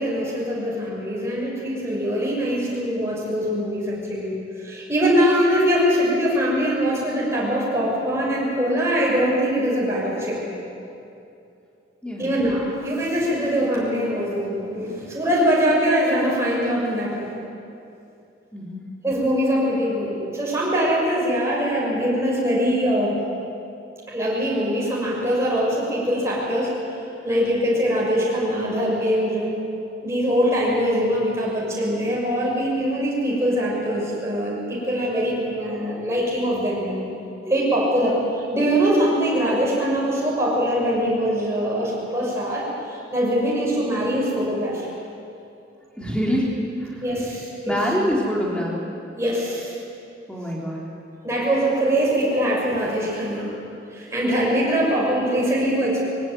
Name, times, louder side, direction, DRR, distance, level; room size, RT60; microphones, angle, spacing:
voice 1, 0.0-10.4 12.2-17.3 19.0-23.2 24.1-26.7 27.2-29.6 30.0-37.0 37.4-42.7 43.1-44.9 47.0-47.8 49.2-49.8 51.2-53.5 53.9-56.1, equal, 15° right, -5 dB, 6.2 m, -22 dB
voice 2, 12.0-12.3 18.5-18.9 46.0-47.0 47.6-48.8 50.3-50.9, equal, 5° left, -4 dB, 3.7 m, -25 dB
22.0 x 17.5 x 9.5 m, 2.7 s
head